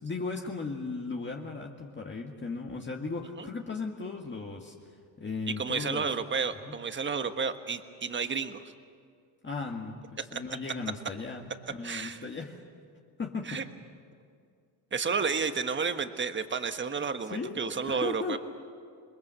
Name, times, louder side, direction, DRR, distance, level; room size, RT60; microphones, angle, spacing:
voice 1, 0.0-4.8 5.2-6.1 6.6-6.8 9.4-12.6 13.2-13.6 15.0-15.3 17.2-18.4, left 4 dB, 25° left, 1 dB, 1.8 m, -37 dB
voice 2, 5.5-8.6 10.3-10.4 11.8-12.2 13.4-13.6 14.9-18.4, right 5 dB, 25° right, 9 dB, 1.3 m, -31 dB
27.5 x 21.5 x 7.7 m, 2.3 s
cardioid pair, 115°, 47 cm